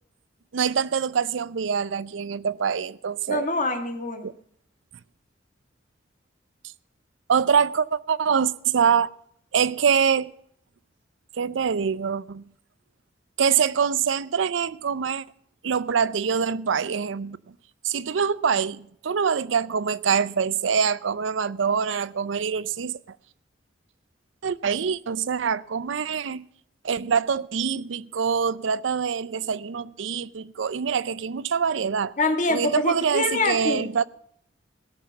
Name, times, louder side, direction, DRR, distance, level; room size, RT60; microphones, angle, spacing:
voice 1, 0.5-3.5 4.2-4.3 7.3-9.1 9.5-10.3 11.4-12.4 13.4-15.2 15.6-17.4 17.8-23.0 24.4-26.5 26.8-32.1 32.5-34.1, right 6 dB, 80° right, 0.5 m, -24 dB
voice 2, 3.3-4.3 32.2-33.9, left 2 dB, 45° left, 1.8 m, -25 dB
17.0 x 6.5 x 6.8 m
head